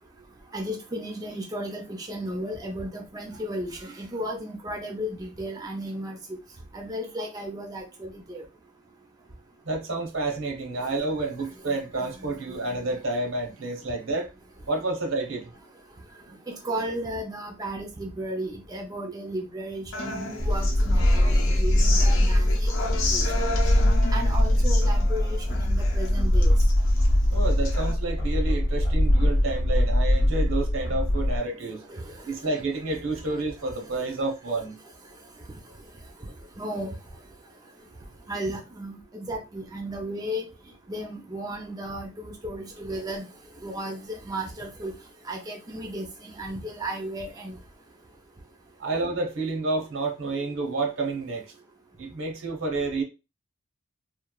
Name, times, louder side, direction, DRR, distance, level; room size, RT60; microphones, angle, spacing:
voice 1, 0.5-6.4 6.7-8.4 11.7-12.1 12.5-12.8 16.5-22.9 23.1-23.5 24.1-26.5 31.9-32.1 32.5-32.6 36.6-36.9 38.3-40.5 40.9-43.3 43.6-44.9 45.2-47.6, right 1 dB, 20° right, 0.4 m, -34 dB
voice 2, 9.7-14.3 14.7-15.5 27.3-31.8 32.3-34.8 48.8-51.4 52.0-53.0, right 2 dB, 80° right, 0.8 m, -29 dB
Human voice / Acoustic guitar, 19.9-27.9, left 3 dB, 80° left, 0.6 m, -34 dB
sound 1, 20.4-31.4, left 1 dB, 45° left, 0.7 m, -22 dB
3.0 x 2.0 x 2.2 m
head